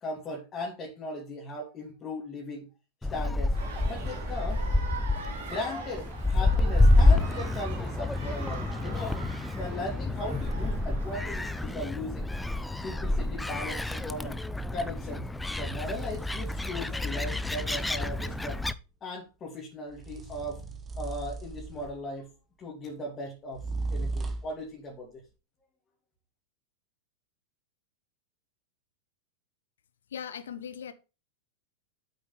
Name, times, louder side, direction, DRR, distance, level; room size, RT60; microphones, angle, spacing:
voice 1, 0.0-2.7 3.1-3.5 3.9-4.6 5.3-9.2 9.6-12.3 12.8-14.4 14.7-15.3 15.6-18.6 19.0-20.6 21.0-22.3 22.6-23.6 23.9-25.2, left 1 dB, 25° left, 2.7 m, -38 dB
Gull seagull, 3.0-18.7, left 2 dB, 5° left, 0.6 m, -28 dB
sound 1, 3.5-11.8, right 5 dB, 65° right, 3.2 m, -43 dB
sound 2, 14.5-14.8 15.7-18.7 19.9-22.2 23.5-24.6, right 3 dB, 20° right, 1.3 m, -38 dB
voice 2, 30.1-30.9, left 8 dB, 65° left, 1.0 m, -38 dB
8.3 x 7.9 x 3.4 m
figure-of-eight pair, 90°, 0 cm